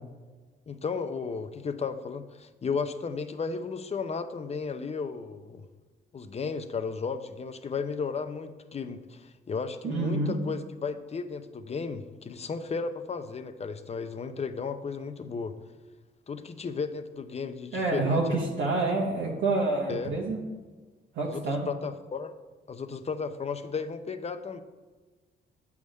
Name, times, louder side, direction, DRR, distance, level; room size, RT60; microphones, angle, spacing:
voice 1, 0.7-5.6 6.1-15.6 16.3-18.4 19.9-20.1 21.2-22.3 22.7-24.6, left 5 dB, 30° left, 10 dB, 0.6 m, -34 dB
voice 2, 9.8-10.3 17.7-20.4 21.1-21.7, right 3 dB, 80° right, -3 dB, 1.1 m, -27 dB
8.0 x 3.6 x 6.3 m, 1.3 s
cardioid pair, 90°, 20 cm